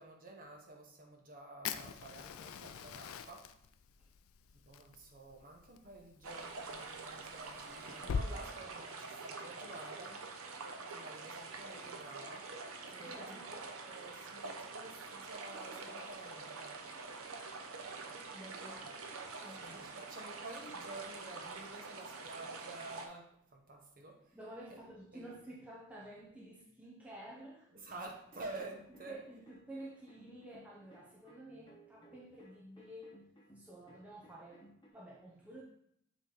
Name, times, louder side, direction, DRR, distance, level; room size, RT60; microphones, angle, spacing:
voice 1, 0.0-3.5 4.7-10.3 10.9-12.5 12.9-16.8 19.6-24.4 24.7-24.8 25.1-25.4 27.7-29.2 31.2-31.7, right 2 dB, 40° right, 1 dB, 1.1 m, -51 dB
Fire, 1.6-8.3, left 6 dB, 80° left, 0.4 m, -44 dB
sound 1, 6.2-23.1, right 4 dB, 80° right, 0.8 m, -46 dB
voice 2, 13.0-13.5 18.3-19.9 24.3-27.7 29.1-33.2 33.5-35.6, right 1 dB, 5° right, -4 dB, 0.7 m, -51 dB
sound 2, 28.3-34.9, right 1 dB, 20° left, 0.8 m, -61 dB
8.2 x 3.1 x 4.0 m, 0.72 s
head